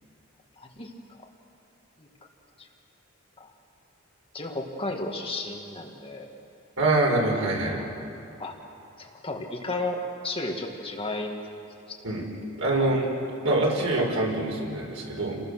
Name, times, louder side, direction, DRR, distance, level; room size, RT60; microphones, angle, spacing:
voice 1, 0.6-0.9 2.0-2.1 3.4-3.5 4.3-6.3 7.8-7.9 8.4-8.5 9.0-11.4 12.8-12.9, left 2 dB, 25° left, 1 dB, 2.1 m, -33 dB
voice 2, 6.8-7.8 12.0-12.2 12.6-13.1 13.4-15.4, right 2 dB, 90° right, -1 dB, 5.0 m, -25 dB
29.5 x 20.0 x 6.6 m, 2.9 s
head